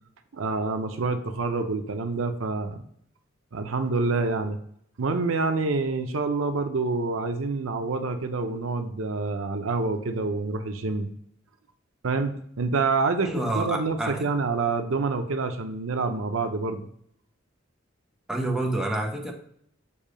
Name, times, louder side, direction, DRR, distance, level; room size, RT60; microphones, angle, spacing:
voice 1, 0.3-2.8 3.5-4.6 5.0-11.1 12.0-16.9, right 3 dB, 85° right, 7 dB, 0.7 m, -27 dB
voice 2, 13.2-14.3 18.3-19.3, right 1 dB, 5° right, 0 dB, 1.0 m, -28 dB
7.0 x 2.7 x 5.0 m, 0.68 s
head